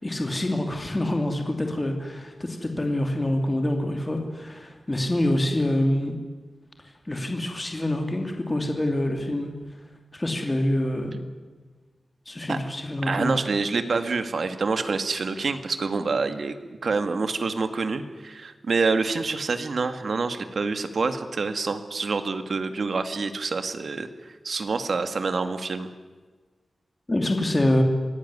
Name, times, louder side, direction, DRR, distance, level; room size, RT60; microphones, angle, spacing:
voice 1, 0.0-6.2 7.1-9.5 10.1-11.2 12.3-13.3 27.1-27.8, left 1 dB, 20° left, 4 dB, 2.9 m, -26 dB
voice 2, 13.0-16.5 16.8-24.1 24.4-25.9, right 4 dB, 60° right, 9 dB, 2.1 m, -27 dB
26.0 x 18.0 x 9.9 m, 1.4 s
wide cardioid pair, 135°, 0 cm